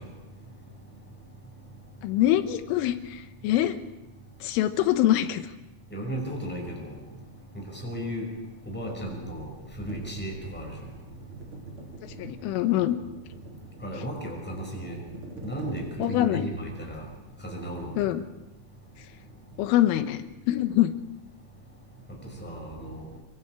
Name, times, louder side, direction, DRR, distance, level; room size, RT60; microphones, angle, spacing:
voice 1, 2.0-3.8 4.4-5.4 12.2-13.0 16.0-16.5 18.0-18.2 19.6-20.9, left 13 dB, 85° left, 9 dB, 3.6 m, -24 dB
voice 2, 5.9-7.0 7.5-8.2 8.7-9.5 9.8-10.8 13.8-15.0 15.4-17.0 17.4-18.0 22.4-23.0, equal, ahead, 0 dB, 5.2 m, -34 dB
sound 1, 9.9-16.6, right 2 dB, 30° right, 3.2 m, -44 dB
27.0 x 23.0 x 4.8 m, 1.0 s
omnidirectional pair, 5.6 m